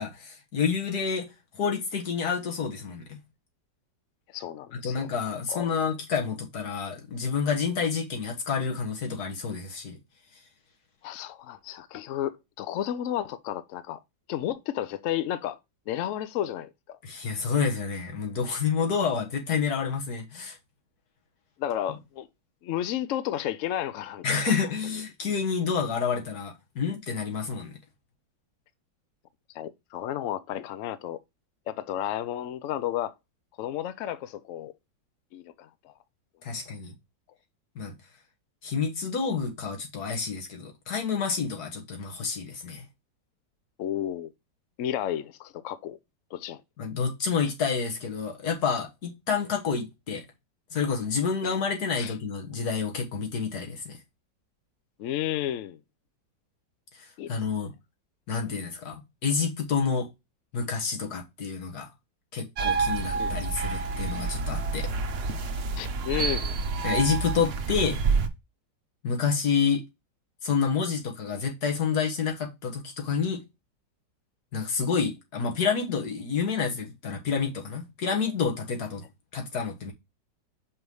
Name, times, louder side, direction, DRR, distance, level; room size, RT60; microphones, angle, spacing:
voice 1, 0.0-3.2 4.8-10.0 17.0-20.6 24.2-27.7 36.4-36.9 37.8-38.0 38.6-42.9 46.8-50.3 50.7-54.0 57.3-57.7 58.3-60.1 60.5-61.9 62.3-64.9 66.8-68.0 69.0-69.8 70.4-73.4 74.5-79.0 79.3-79.9, left 6 dB, 60° left, 1.9 m, -29 dB
voice 2, 4.3-5.1 5.5-5.7 11.0-14.0 14.3-15.6 15.9-17.0 21.6-22.3 22.6-24.5 29.5-31.2 31.7-33.1 33.6-34.7 35.3-35.9 43.8-44.3 44.8-46.0 46.3-46.6 51.4-51.5 52.0-52.1 55.0-55.8 57.2-57.4 63.2-63.4 65.8-66.6, left 11 dB, 85° left, 0.6 m, -32 dB
sound 1, 62.6-68.3, right 4 dB, 65° right, 0.6 m, -28 dB
5.6 x 3.2 x 5.3 m
omnidirectional pair, 1.9 m